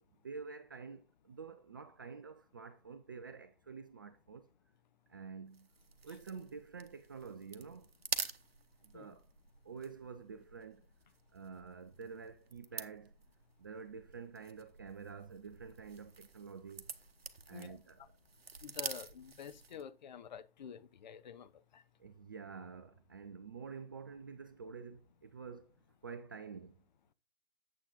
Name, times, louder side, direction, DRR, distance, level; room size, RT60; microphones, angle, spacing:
voice 1, 0.2-4.5 5.1-5.7 6.0-7.9 8.8-9.3 9.6-10.9 11.3-13.1 13.6-16.9 17.5-18.1 22.0-25.8 26.0-26.8, right 5 dB, 20° right, 0.3 m, -48 dB
sound 1, 5.5-19.9, right 4 dB, 75° right, 1.0 m, -48 dB
voice 2, 18.6-21.8, left 8 dB, 45° left, 0.8 m, -49 dB
9.1 x 7.5 x 3.8 m
figure-of-eight pair, 125°, 31 cm